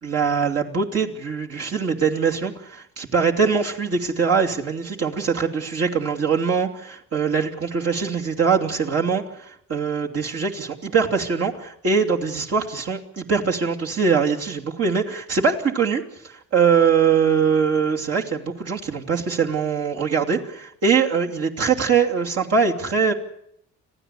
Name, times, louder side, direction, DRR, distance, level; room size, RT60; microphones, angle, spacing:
voice 1, 0.0-23.1, right 6 dB, 55° right, 0 dB, 3.0 m, -22 dB
26.0 x 15.5 x 8.3 m, 0.73 s
cardioid pair, 90°, 30 cm